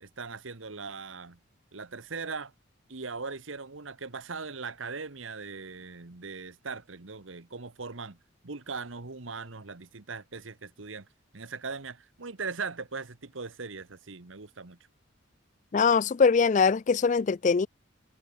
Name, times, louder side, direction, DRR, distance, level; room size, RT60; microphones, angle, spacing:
voice 1, 0.0-1.4 1.7-2.5 2.9-8.2 8.4-11.1 11.3-14.8, right 4 dB, 85° right, 1.4 m, -39 dB
voice 2, 15.7-17.7, left 5 dB, 40° left, 0.4 m, -22 dB
head